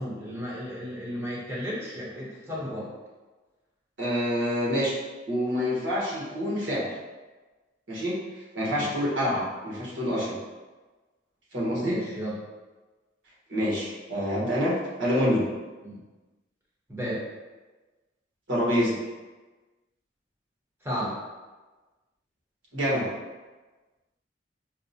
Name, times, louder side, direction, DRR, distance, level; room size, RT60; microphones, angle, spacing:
voice 1, 0.0-2.9 8.8-8.9 11.8-12.4 15.8-16.0 16.9-17.2 20.8-21.2, equal, 15° right, -7 dB, 0.9 m, -33 dB
voice 2, 4.0-4.9 5.3-6.9 7.9-8.2 8.5-10.4 11.5-12.0 13.5-15.5 18.5-19.0 22.7-23.1, equal, 85° right, -6 dB, 1.2 m, -26 dB
4.5 x 2.1 x 2.7 m, 1.2 s
head